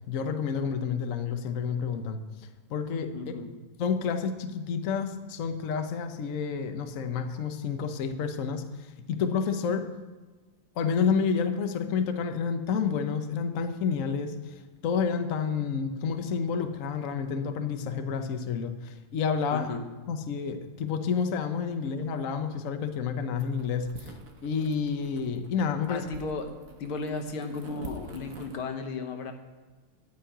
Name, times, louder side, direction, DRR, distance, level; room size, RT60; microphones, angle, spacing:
voice 1, 0.1-2.2 2.7-3.3 3.8-9.8 10.8-14.5 14.8-19.7 20.1-24.1 24.4-26.0, left 6 dB, 55° left, 7 dB, 0.9 m, -29 dB
voice 2, 3.1-3.5 19.5-19.9 25.9-26.5 26.8-29.3, left 4 dB, 75° left, 6 dB, 2.1 m, -35 dB
sound 1, 23.4-28.6, right 3 dB, 45° right, 1.4 m, -46 dB
13.0 x 5.6 x 9.0 m, 1.3 s
omnidirectional pair, 2.4 m